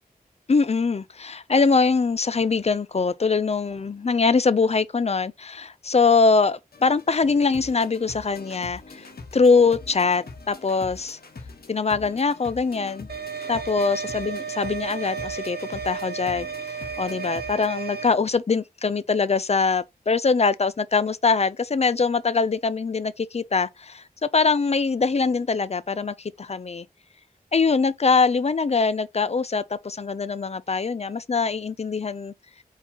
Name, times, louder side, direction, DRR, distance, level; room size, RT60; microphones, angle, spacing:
voice 1, 0.5-9.1 9.3-11.2 11.7-13.1 13.5-16.5 17.0-26.9 27.5-32.3, left 4 dB, 40° left, 0.4 m, -23 dB
sound 1, 6.7-17.7, left 3 dB, 75° left, 1.1 m, -43 dB
sound 2, 13.1-18.1, right 6 dB, 85° right, 0.7 m, -33 dB
4.5 x 3.9 x 2.8 m
wide cardioid pair, 70°, 16 cm